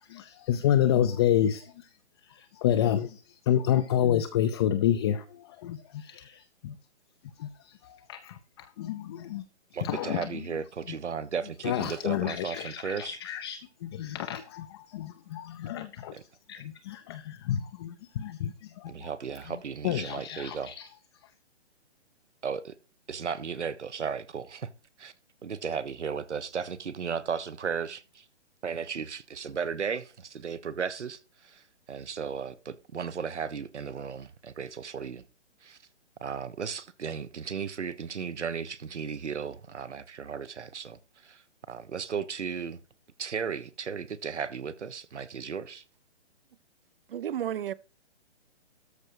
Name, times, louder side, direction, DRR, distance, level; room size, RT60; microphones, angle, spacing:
voice 1, 0.1-1.9 2.3-6.8 7.4-9.4 9.8-10.4 11.6-16.2 16.5-19.1 19.8-20.9, left 10 dB, 25° left, 0.6 m, -29 dB
voice 2, 9.7-13.2 16.1-16.2 18.9-20.7 22.4-22.7 23.1-24.7 25.0-25.1 25.4-28.2 28.6-35.2 35.6-35.8 36.2-41.4 41.7-42.8 43.2-45.8, right 6 dB, 85° right, 1.4 m, -35 dB
voice 3, 47.1-47.7, right 10 dB, 55° right, 0.8 m, -32 dB
13.5 x 5.3 x 4.7 m
hypercardioid pair, 145°, 34 cm